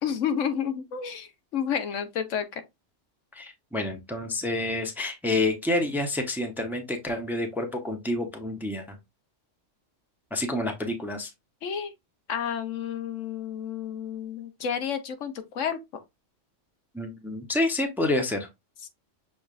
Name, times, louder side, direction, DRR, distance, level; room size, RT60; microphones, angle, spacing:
voice 1, 0.0-2.6 11.6-11.9 12.3-15.8, left 8 dB, 80° left, 1.1 m, -30 dB
voice 2, 3.3-9.0 10.3-11.3 16.9-18.5, left 2 dB, ahead, 0.7 m, -28 dB
6.2 x 3.4 x 2.5 m
omnidirectional pair, 1.3 m